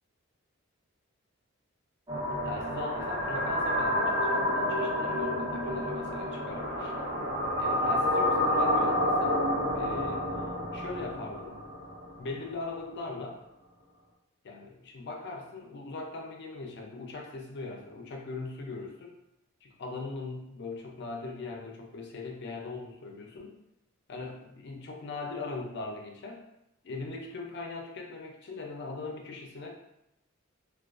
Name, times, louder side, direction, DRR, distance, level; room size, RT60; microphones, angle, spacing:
sound 1, 2.1-12.2, left 1 dB, 25° right, 0.7 m, -29 dB
voice 1, 2.4-6.9 7.6-9.4 9.7-10.3 10.7-11.6 12.2-13.4 14.4-19.1 19.6-23.6 24.1-26.4 26.8-29.7, left 3 dB, 55° left, 1 dB, 0.4 m, -40 dB
2.3 x 2.2 x 2.3 m, 0.85 s
head